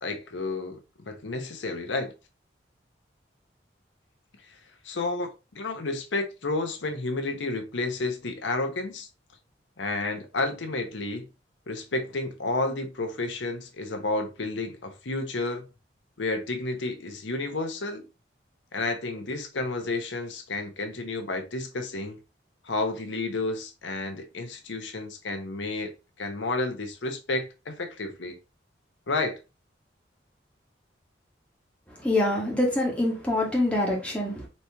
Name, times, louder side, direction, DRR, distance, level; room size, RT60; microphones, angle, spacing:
voice 1, 0.0-0.8 1.1-2.1 4.8-5.3 5.5-9.1 9.8-11.3 11.7-15.6 16.2-18.0 18.7-22.2 22.6-25.9 26.2-28.4 29.1-29.4, left 2 dB, 85° left, 0.8 m, -31 dB
voice 2, 32.0-34.5, left 1 dB, 5° left, 1.2 m, -25 dB
4.2 x 2.9 x 3.3 m
head